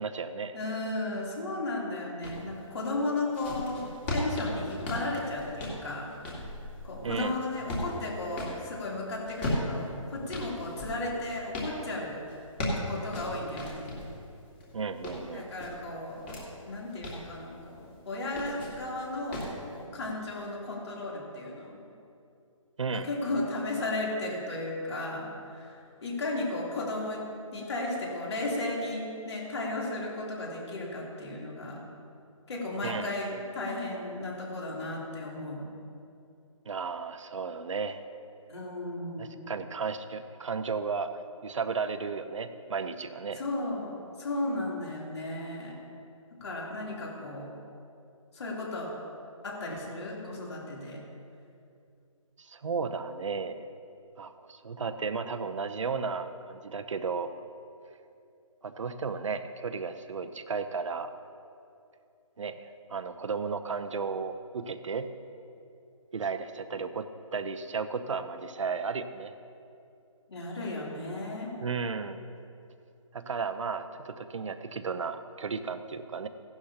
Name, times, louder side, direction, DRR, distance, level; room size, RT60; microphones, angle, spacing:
voice 1, 0.0-0.6 7.0-7.4 14.7-15.5 22.8-23.1 32.8-33.1 36.7-38.0 39.2-43.4 52.4-53.7 54.2-57.3 58.6-61.1 62.4-65.1 66.1-69.3 71.6-72.2 73.1-76.3, right 5 dB, 65° right, 9 dB, 0.7 m, -34 dB
voice 2, 0.5-6.1 6.8-12.2 12.8-13.9 15.3-16.2 16.6-21.8 22.9-31.8 32.5-35.7 38.5-39.4 43.3-45.8 46.4-47.5 48.3-48.9 49.4-51.0 70.3-71.5, left 2 dB, 50° left, -3 dB, 3.2 m, -35 dB
sound 1, 2.2-2.4 3.0-8.6 9.2-11.7 12.3-14.1 14.6-16.4 16.8-17.3 18.2-18.8 19.3-19.6, left 1 dB, 20° left, 2.1 m, -36 dB
16.0 x 11.5 x 2.9 m, 2.6 s
hypercardioid pair, 165°, 17 cm